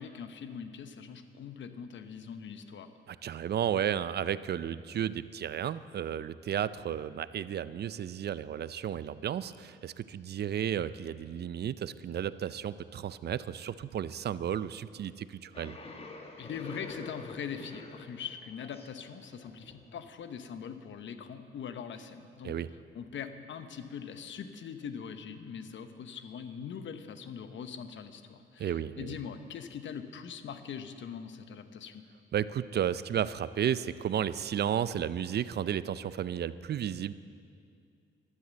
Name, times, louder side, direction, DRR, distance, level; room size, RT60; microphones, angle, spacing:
voice 1, 0.0-2.9 16.4-22.5 22.9-32.1, left 7 dB, 65° left, 9 dB, 1.0 m, -42 dB
voice 2, 3.1-15.8 22.4-22.7 28.6-29.2 32.3-37.1, right 9 dB, 55° right, 16 dB, 0.5 m, -33 dB
sound 1, 15.5-20.5, left 2 dB, 30° left, 1.5 m, -47 dB
12.5 x 12.5 x 7.5 m, 2.3 s
cardioid pair, 100°, 21 cm